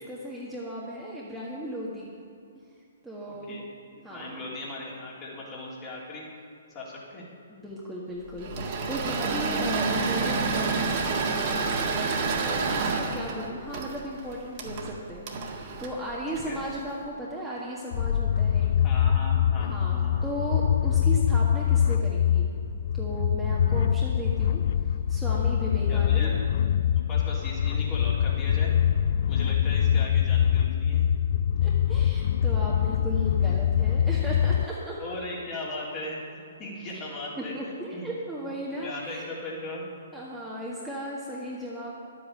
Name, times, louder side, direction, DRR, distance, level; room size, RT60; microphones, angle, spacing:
voice 1, 0.1-2.2 2.6-2.7 3.0-3.6 4.0-4.4 7.5-18.7 19.7-22.5 22.9-24.6 25.1-26.3 31.6-35.0 36.8-37.0 37.4-39.3 40.1-41.9, equal, 5° right, -7 dB, 1.6 m, -36 dB
voice 2, 3.3-3.6 4.0-6.3 6.7-7.2 12.6-12.9 16.3-16.6 18.8-20.3 25.9-26.3 27.0-28.7 29.3-31.0 35.0-38.1 38.8-39.9, left 2 dB, 25° left, -5 dB, 3.4 m, -38 dB
Engine / Mechanisms, 8.4-16.8, right 4 dB, 40° right, 1.7 m, -29 dB
sound 1, 17.9-34.6, left 9 dB, 50° left, 0.3 m, -24 dB
11.5 x 8.6 x 6.7 m, 2.5 s
figure-of-eight pair, 125°, 0 cm